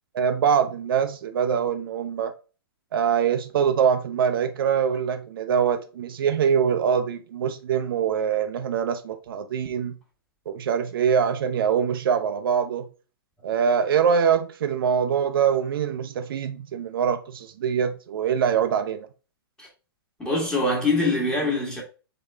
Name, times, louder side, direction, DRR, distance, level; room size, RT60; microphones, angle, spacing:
voice 1, 0.1-2.3 2.9-10.0 10.5-12.9 13.4-19.1, right 7 dB, 65° right, 0.5 m, -23 dB
voice 2, 20.2-21.8, left 2 dB, 5° left, 1.4 m, -24 dB
3.8 x 3.7 x 3.3 m
hypercardioid pair, 150°, 13 cm